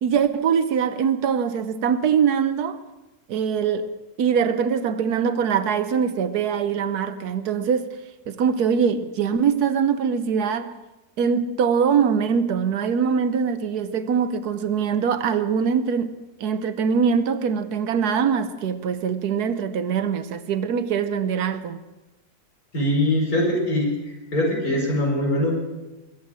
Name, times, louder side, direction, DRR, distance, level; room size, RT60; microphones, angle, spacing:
voice 1, 0.0-2.8 3.3-3.9 4.2-7.9 8.3-10.7 11.2-16.1 16.4-21.8, right 7 dB, 80° right, 1.4 m, -23 dB
voice 2, 22.7-25.5, left 1 dB, 65° left, 5.3 m, -22 dB
22.5 x 8.5 x 7.6 m
omnidirectional pair, 1.6 m